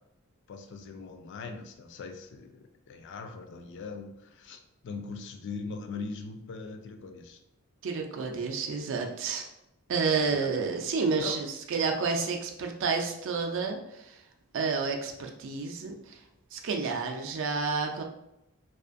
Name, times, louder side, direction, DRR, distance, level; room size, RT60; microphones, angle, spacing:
voice 1, 0.5-4.6 4.8-7.4 10.3-10.5 11.2-11.3, left 4 dB, 55° left, 6 dB, 0.3 m, -40 dB
voice 2, 7.8-9.5 9.9-14.1 14.5-16.2 16.5-18.0, right 4 dB, 60° right, 3 dB, 0.4 m, -30 dB
2.5 x 2.4 x 2.4 m, 0.85 s
head